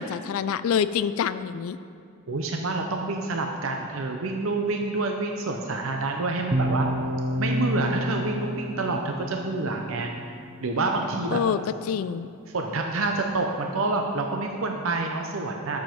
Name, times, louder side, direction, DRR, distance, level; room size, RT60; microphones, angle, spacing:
voice 1, 0.0-1.8 11.3-12.3, left 7 dB, 80° left, 13 dB, 0.3 m, -26 dB
voice 2, 2.3-6.9 7.4-10.1 10.6-11.4 12.5-15.8, right 3 dB, 75° right, 2 dB, 0.7 m, -28 dB
sound 1, 6.5-10.6, equal, 25° right, 0.5 m, -29 dB
11.5 x 7.2 x 4.5 m, 2.5 s
head